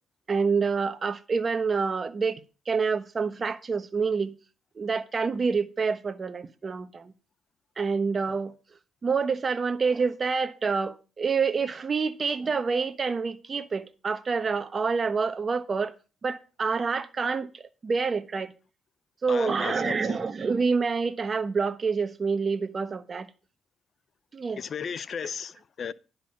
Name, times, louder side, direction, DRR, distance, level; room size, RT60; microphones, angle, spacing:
voice 1, 0.3-2.4 2.7-4.4 4.8-7.1 7.8-8.5 9.0-15.9 16.2-18.5 19.2-23.3 24.3-24.6, right 5 dB, 35° right, 1.0 m, -27 dB
voice 2, 19.3-20.2 24.6-25.9, left 7 dB, 50° left, 0.6 m, -35 dB
10.5 x 4.9 x 7.3 m
cardioid pair, 90°, 0 cm